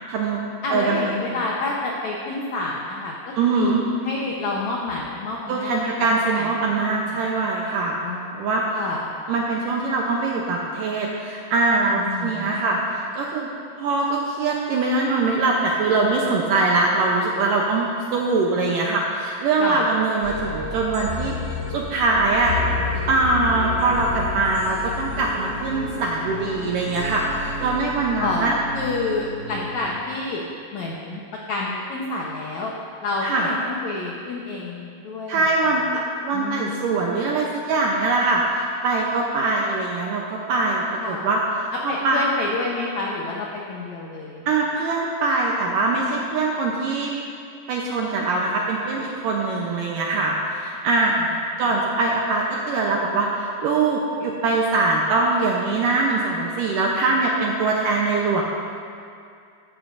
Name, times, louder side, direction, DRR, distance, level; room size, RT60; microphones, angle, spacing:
voice 1, 0.1-0.4 0.7-1.2 3.4-3.8 5.5-8.0 8.4-8.8 9.3-13.5 13.8-22.6 23.1-28.5 33.2-33.5 35.3-42.2 44.5-47.1 47.7-51.2 51.6-58.4, right 3 dB, 75° right, -1 dB, 2.0 m, -22 dB
voice 2, 0.6-5.9 6.3-6.5 6.8-7.1 8.0-9.0 12.0-12.6 19.6-19.8 28.2-28.5 28.7-30.4 30.7-31.2 31.5-32.7 33.0-35.4 36.3-37.0 41.0-41.3 41.9-44.4 51.2-51.3 51.6-51.7, left 3 dB, 85° left, -3 dB, 1.6 m, -29 dB
sound 1, 20.2-29.9, left 3 dB, 20° right, 3.0 m, -31 dB
14.5 x 13.5 x 2.6 m, 2.3 s
omnidirectional pair, 4.8 m